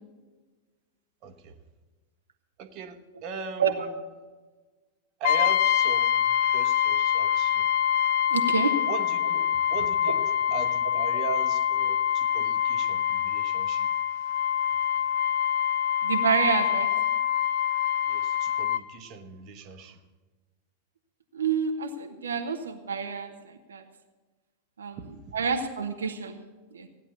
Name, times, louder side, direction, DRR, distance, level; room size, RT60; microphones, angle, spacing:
voice 1, 1.2-1.6 2.6-3.9 5.2-7.7 8.9-9.4 9.7-10.2 10.5-13.9 18.0-20.0 25.0-25.4, right 5 dB, 40° right, 8 dB, 1.2 m, -39 dB
Brass instrument, 5.2-18.9, left 9 dB, 50° left, 0.6 m, -25 dB
voice 2, 8.3-8.7 10.1-10.2 16.0-16.9 21.3-23.8 24.8-25.0 25.3-26.4 26.7-26.9, right 6 dB, 70° right, 5 dB, 0.9 m, -28 dB
15.5 x 9.8 x 6.8 m, 1.3 s
figure-of-eight pair, 90°, 0 cm